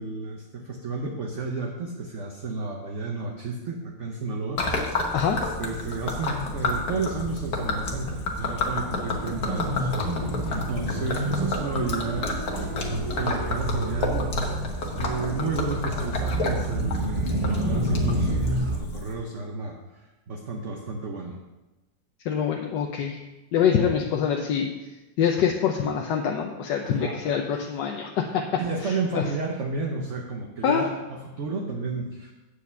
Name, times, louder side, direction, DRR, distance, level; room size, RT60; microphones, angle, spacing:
voice 1, 0.0-21.4 26.8-27.2 28.6-32.3, right 3 dB, 50° right, 1 dB, 1.1 m, -32 dB
Gurgling / Liquid, 4.6-19.1, left 3 dB, 65° left, 1.7 m, -31 dB
sound 1, 6.0-18.8, right 1 dB, 25° right, 0.8 m, -30 dB
voice 2, 22.2-23.2 23.5-24.7 25.2-29.2 30.6-30.8, left 7 dB, 80° left, 2 dB, 1.4 m, -25 dB
8.5 x 5.0 x 6.8 m, 1.1 s
omnidirectional pair, 1.9 m